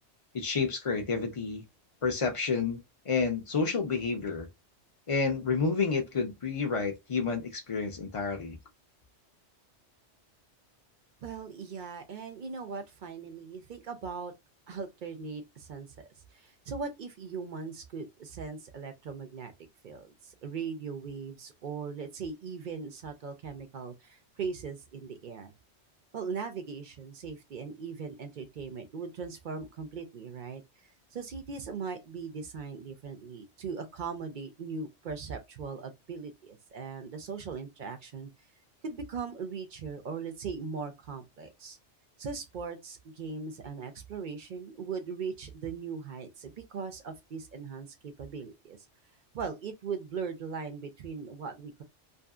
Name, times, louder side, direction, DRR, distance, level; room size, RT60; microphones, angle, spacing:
voice 1, 0.3-1.6 2.0-4.5 5.1-8.6, left 4 dB, 40° left, 0.5 m, -30 dB
voice 2, 11.2-14.3 14.7-19.5 19.8-25.5 26.1-38.3 38.8-41.8 42.2-48.8 49.3-51.8, right 5 dB, 55° right, 0.6 m, -39 dB
2.6 x 2.6 x 2.3 m
omnidirectional pair, 1.2 m